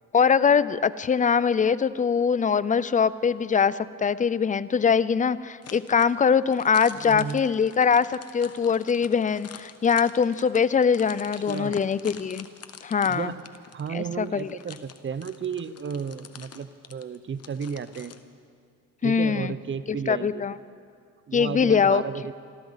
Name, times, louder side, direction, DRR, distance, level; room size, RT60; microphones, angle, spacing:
voice 1, 0.1-12.5 12.8-13.3 13.9-14.5 19.0-19.5 20.1-20.5 21.3-22.0, left 6 dB, 25° left, 17 dB, 0.5 m, -22 dB
sound 1, 5.6-18.2, left 8 dB, 45° left, 1.0 m, -46 dB
voice 2, 6.9-7.4 11.5-11.8 13.1-13.4 13.7-18.1 19.0-20.4 21.3-22.3, right 6 dB, 35° right, 14 dB, 0.8 m, -33 dB
27.5 x 13.0 x 4.1 m, 2.3 s
cardioid pair, 90°, 34 cm